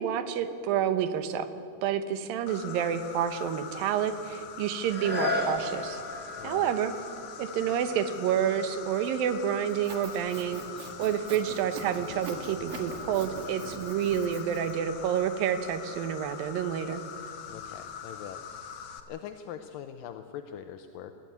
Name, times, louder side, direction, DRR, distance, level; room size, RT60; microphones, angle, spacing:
voice 1, 0.0-1.5 1.8-6.0 6.4-6.9 7.4-10.6 11.0-17.0, right 9 dB, 75° right, 11 dB, 2.7 m, -29 dB
Insect, 2.5-19.0, left 7 dB, 60° left, 1.9 m, -43 dB
sound 1, 4.8-10.5 11.0-11.1, left 2 dB, 5° right, 2.9 m, -36 dB
voice 2, 6.4-6.7 17.5-18.4 19.1-21.1, left 9 dB, 80° left, 7 dB, 2.4 m, -42 dB
Sawing, 9.7-14.7, right 4 dB, 45° right, 2.2 m, -43 dB
21.5 x 14.5 x 9.4 m, 2.7 s
omnidirectional pair, 4.2 m